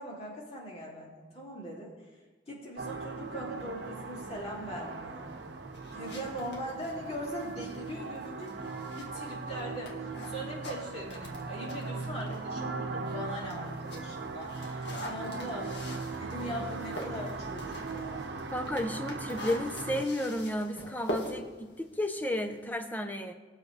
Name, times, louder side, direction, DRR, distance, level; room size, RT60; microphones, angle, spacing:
voice 1, 0.0-1.9 2.5-5.3 5.9-15.8 16.2-18.3, equal, 35° left, -4 dB, 2.8 m, -41 dB
sound 1, 2.8-20.0, right 3 dB, 65° right, 0.9 m, -39 dB
sound 2, 5.7-12.5 12.9-22.7, left 1 dB, 65° left, 1.9 m, -45 dB
voice 2, 18.5-23.3, left 1 dB, 10° left, 5 dB, 0.8 m, -33 dB
20.0 x 7.3 x 3.3 m, 1.3 s
head